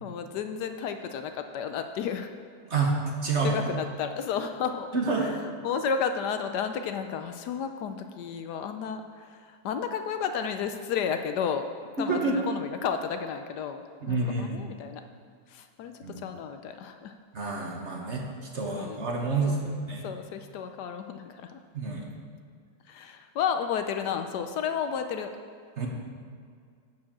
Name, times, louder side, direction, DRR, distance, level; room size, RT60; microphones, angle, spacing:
voice 1, 0.0-2.3 3.4-4.9 5.2-11.7 12.0-15.0 15.5-17.1 18.8-19.0 19.4-19.7 20.0-21.6 22.9-25.3, left 7 dB, 75° left, 7 dB, 1.1 m, -32 dB
voice 2, 2.7-3.6 4.9-5.3 12.0-12.4 14.0-14.6 16.0-16.2 17.3-18.2 18.5-20.1 21.7-22.0 25.8-25.9, right 3 dB, 45° right, 0 dB, 1.2 m, -28 dB
10.0 x 4.8 x 7.3 m, 2.2 s
omnidirectional pair, 1.9 m